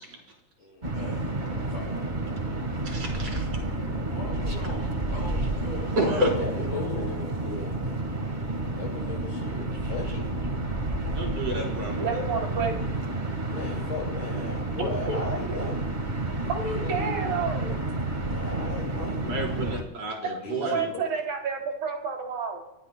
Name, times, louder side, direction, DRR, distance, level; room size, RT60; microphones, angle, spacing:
sound 1, 0.8-19.8, right 2 dB, 35° right, 0.7 m, -30 dB
voice 1, 0.9-2.5 4.0-7.7 16.6-17.5, left 1 dB, 55° left, -3 dB, 4.6 m, -42 dB
voice 2, 2.9-3.5 6.0-6.3 11.1-12.2 19.2-20.8, equal, 55° right, -2 dB, 5.5 m, -29 dB
voice 3, 6.4-7.2 7.4-8.0 8.4-10.3 13.5-15.8 18.2-19.2 20.4-20.9, left 3 dB, 85° left, -2 dB, 8.4 m, -36 dB
voice 4, 12.0-12.9 14.4-15.2 16.5-17.7 20.2-22.6, right 5 dB, 80° right, 1 dB, 4.4 m, -30 dB
29.5 x 19.0 x 2.2 m, 0.94 s
omnidirectional pair, 3.4 m